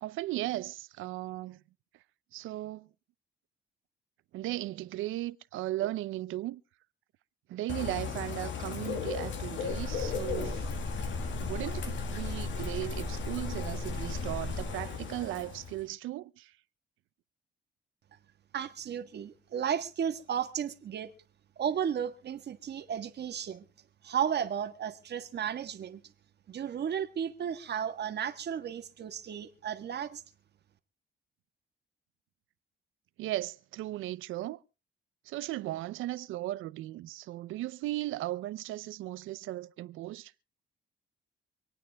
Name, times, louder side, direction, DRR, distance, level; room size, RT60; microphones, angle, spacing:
voice 1, 0.0-1.6 2.3-2.9 4.3-6.6 7.5-10.7 11.4-16.5 33.2-34.6 35.3-40.3, right 15 dB, 85° right, 0.6 m, -36 dB
Bird / Rain, 7.7-15.8, left 7 dB, 70° left, 2.1 m, -37 dB
sound 1, 9.7-14.7, left 1 dB, 20° left, 1.9 m, -37 dB
voice 2, 18.5-21.1 21.6-23.6 24.0-26.0 26.5-30.2, right 8 dB, 55° right, 1.6 m, -34 dB
26.5 x 9.1 x 3.5 m
cardioid pair, 90°, 20 cm